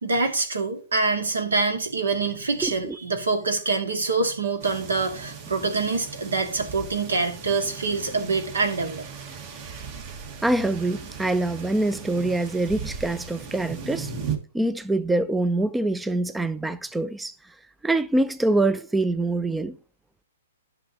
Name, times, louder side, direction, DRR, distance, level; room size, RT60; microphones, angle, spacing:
voice 1, 0.0-9.0, right 3 dB, 80° right, 1.6 m, -25 dB
voice 2, 2.6-3.0 10.4-14.1 14.5-17.3 17.8-19.8, right 2 dB, 5° right, 0.3 m, -25 dB
sound 1, 4.6-14.4, right 6 dB, 40° right, 1.4 m, -37 dB
11.0 x 5.9 x 2.8 m
hypercardioid pair, 125°, 0 cm